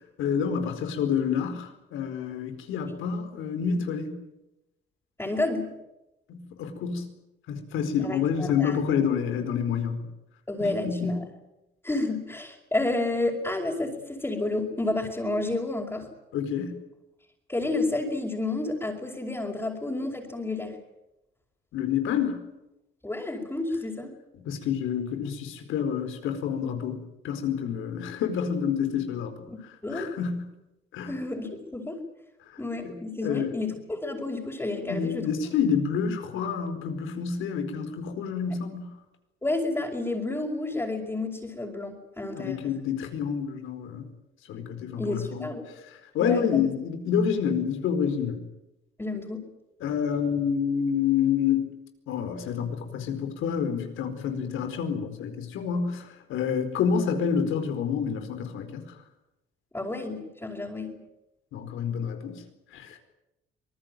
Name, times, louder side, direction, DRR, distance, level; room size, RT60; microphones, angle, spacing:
voice 1, 0.0-4.2 6.3-7.1 7.5-10.1 10.6-11.2 16.3-16.8 21.7-22.4 24.4-29.3 29.9-30.5 30.9-31.2 32.8-33.5 34.9-38.9 42.3-44.0 44.5-45.5 45.8-48.4 49.8-51.7 52.1-58.9 61.5-62.4 62.7-63.0, left 7 dB, 90° left, 7 dB, 4.6 m, -28 dB
voice 2, 5.2-5.7 8.0-8.8 10.5-11.2 11.8-16.1 17.5-20.8 23.0-24.1 29.5-30.1 31.1-32.0 32.6-35.3 39.4-42.6 45.0-45.6 46.2-46.7 49.0-49.5 59.7-61.0, left 2 dB, 10° left, -3 dB, 5.2 m, -30 dB
25.5 x 20.0 x 9.2 m, 0.94 s
cardioid pair, 90°, 20 cm